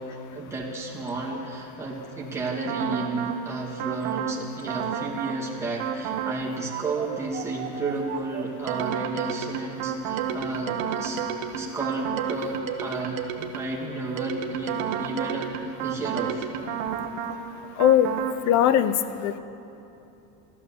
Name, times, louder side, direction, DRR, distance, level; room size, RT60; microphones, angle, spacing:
voice 1, 0.0-11.2 11.5-16.5, right 3 dB, 5° right, -5 dB, 2.3 m, -32 dB
sound 1, 2.7-3.4 3.8-4.4 4.7-5.4 5.8-6.4 6.7-13.8 14.2-17.4 17.8-18.4, right 8 dB, 80° right, 1.2 m, -31 dB
voice 2, 17.8-18.1 18.5-19.0 19.2-19.4, left 10 dB, 45° left, 13 dB, 0.7 m, -19 dB
15.0 x 12.0 x 7.1 m, 2.8 s
cardioid pair, 150°, 39 cm